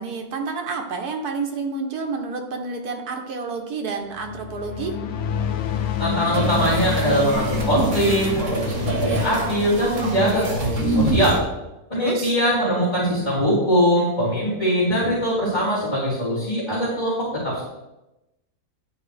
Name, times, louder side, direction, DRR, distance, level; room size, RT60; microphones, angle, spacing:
voice 1, 0.0-5.0 11.9-12.3, right 4 dB, 85° right, 3 dB, 1.4 m, -29 dB
sound 1, 4.1-10.8, left 8 dB, 80° left, 1.1 m, -29 dB
voice 2, 6.0-11.4 11.9-17.6, equal, 25° left, -14 dB, 2.8 m, -22 dB
sound 2, 6.3-11.4, right 2 dB, 55° right, 1.3 m, -26 dB
10.5 x 4.7 x 3.3 m, 0.97 s
omnidirectional pair, 1.6 m